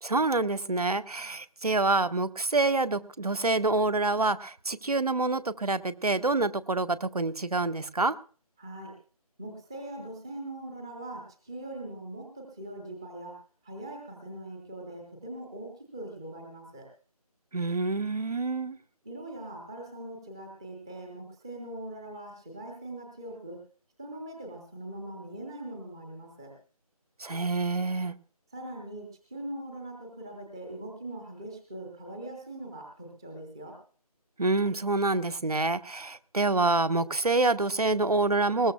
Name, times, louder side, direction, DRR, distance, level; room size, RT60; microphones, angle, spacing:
voice 1, 0.0-8.1 17.5-18.8 27.2-28.1 34.4-38.7, right 3 dB, 70° right, 14 dB, 0.9 m, -27 dB
voice 2, 8.6-9.0 9.4-16.9 19.0-23.6 24.0-26.5 28.5-33.8, right 1 dB, 5° right, 1 dB, 0.7 m, -41 dB
20.5 x 17.5 x 2.3 m, 0.41 s
figure-of-eight pair, 160°, 20 cm